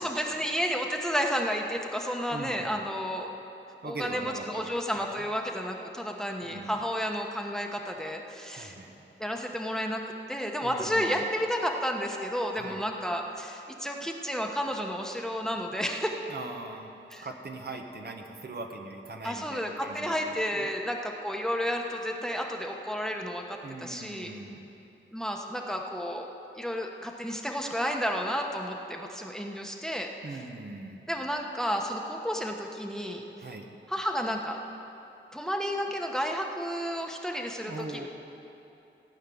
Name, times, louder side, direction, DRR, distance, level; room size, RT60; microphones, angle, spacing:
voice 1, 0.0-3.3 3.8-8.7 9.2-10.0 10.3-16.2 17.1-17.3 19.2-24.3 25.1-26.3 26.5-30.1 31.1-33.2 33.9-34.6 35.3-38.1, equal, 5° left, 2 dB, 1.2 m, -31 dB
voice 2, 2.3-2.8 3.8-5.2 6.4-6.8 8.5-9.0 10.6-11.2 12.5-12.8 16.3-16.9 17.2-20.7 23.6-24.7 30.2-31.1 33.4-33.7 37.6-38.1, right 2 dB, 55° right, 3 dB, 1.2 m, -41 dB
16.0 x 5.7 x 9.4 m, 2.9 s
wide cardioid pair, 70°, 20 cm